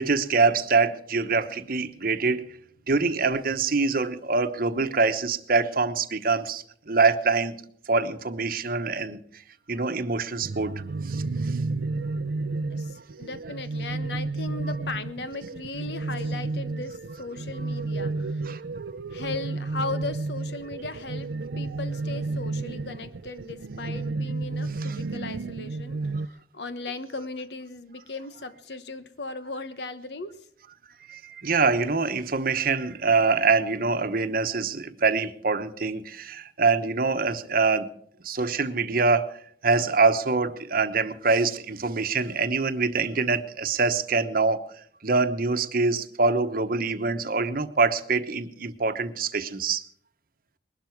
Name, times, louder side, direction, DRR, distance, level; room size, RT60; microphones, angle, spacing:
voice 1, 0.0-2.4 2.9-7.6 7.9-9.2 9.7-11.6 18.5-18.8 24.8-25.0 31.1-37.9 38.2-39.3 39.6-44.6 45.0-49.8, right 4 dB, 55° right, 1.0 m, -25 dB
sound 1, 10.4-26.3, right 3 dB, 80° right, 0.5 m, -32 dB
voice 2, 12.7-18.4 19.1-26.0 26.5-30.4, left 3 dB, 70° left, 1.1 m, -37 dB
21.0 x 12.0 x 4.6 m
head